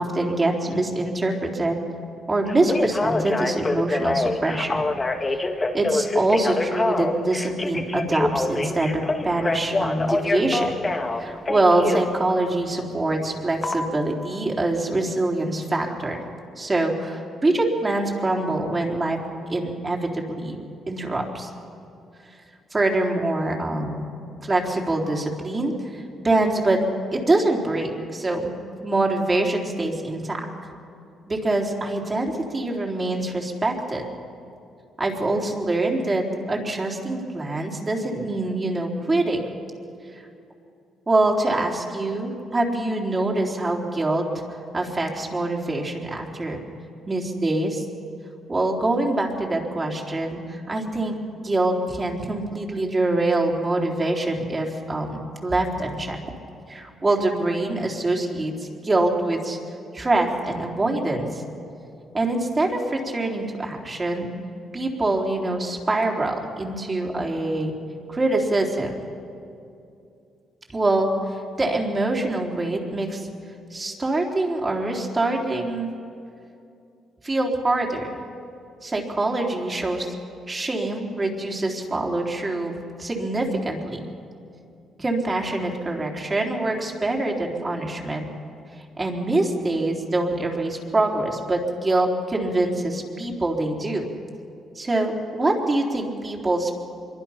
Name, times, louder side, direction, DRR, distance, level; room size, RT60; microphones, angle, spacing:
voice 1, 0.0-1.8 2.3-4.8 5.7-10.8 11.1-16.2 16.6-19.2 19.5-20.6 20.9-21.5 22.7-24.1 24.4-26.8 27.1-28.5 28.8-30.5 31.3-34.0 35.0-39.4 40.1-40.2 41.1-44.2 44.7-46.6 47.1-47.8 48.5-51.1 51.4-56.2 56.7-59.6 59.9-61.4 62.1-64.3 64.7-67.8 68.1-68.9 70.7-73.3 73.7-75.9 77.2-78.1 78.8-80.1 80.5-82.7 83.0-84.0 85.0-88.2 89.0-94.0 94.8-96.7, right 2 dB, 25° right, 0 dB, 3.7 m, -24 dB
Telephone, 2.5-12.1 13.6-13.8, left 2 dB, 25° left, 1.8 m, -25 dB
25.0 x 23.0 x 5.8 m, 2.6 s
cardioid pair, 90°, 0 cm